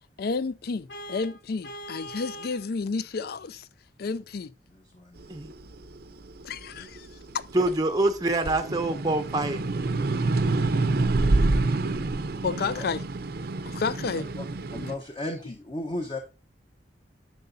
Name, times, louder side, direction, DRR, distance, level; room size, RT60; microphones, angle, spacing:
voice 1, 0.2-3.7 4.0-4.5 6.4-7.1 7.3-7.4 12.4-13.0 13.7-14.3, left 4 dB, 60° left, 0.4 m, -31 dB
Vehicle horn car horn honking, 0.9-2.7, equal, 85° left, 0.9 m, -41 dB
voice 2, 4.7-5.4 6.8-6.9 11.2-11.4 12.4-12.9 14.1-14.4 14.7-16.2, left 2 dB, 30° left, 0.9 m, -36 dB
sound 1, 5.3-7.9 8.3-14.9, right 2 dB, 60° right, 0.6 m, -27 dB
voice 3, 7.5-9.6, right 2 dB, 20° right, 0.6 m, -25 dB
10.5 x 6.8 x 2.7 m
head